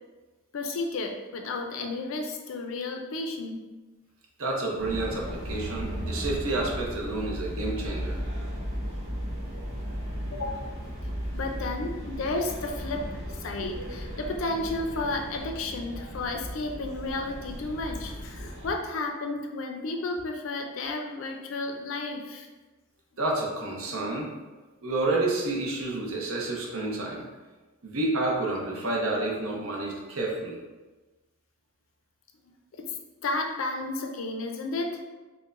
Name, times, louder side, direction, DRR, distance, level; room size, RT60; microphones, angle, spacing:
voice 1, 0.5-3.6 10.3-10.8 11.3-13.1 13.4-22.5 32.7-33.0 33.2-35.0, left 2 dB, 70° left, 4 dB, 0.4 m, -32 dB
voice 2, 4.4-8.2 23.2-24.3 24.8-27.3 27.8-30.6, right 2 dB, 80° right, -1 dB, 0.7 m, -29 dB
sound 1, 4.8-18.7, equal, 45° right, 1.4 m, -36 dB
4.5 x 2.1 x 2.4 m, 1.2 s
head